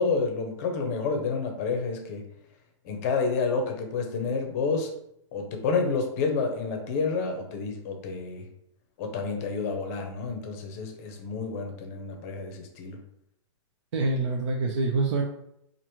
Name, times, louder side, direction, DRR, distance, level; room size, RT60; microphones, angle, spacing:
voice 1, 0.0-2.3 2.8-4.9 5.3-8.5 9.0-13.0, left 4 dB, 30° left, 4 dB, 0.6 m, -29 dB
voice 2, 13.9-15.2, right 3 dB, 60° right, -1 dB, 0.7 m, -25 dB
4.6 x 2.5 x 3.0 m, 0.76 s
hypercardioid pair, 165°, 16 cm